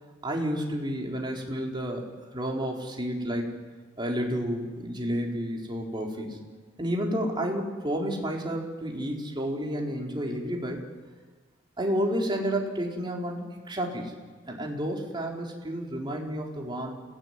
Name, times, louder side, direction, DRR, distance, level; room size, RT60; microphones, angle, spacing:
voice 1, 0.2-2.0 2.3-3.5 4.0-6.4 6.8-10.8 11.8-14.1 14.5-16.9, equal, 25° right, 0 dB, 4.2 m, -30 dB
29.5 x 18.0 x 9.8 m, 1.4 s
head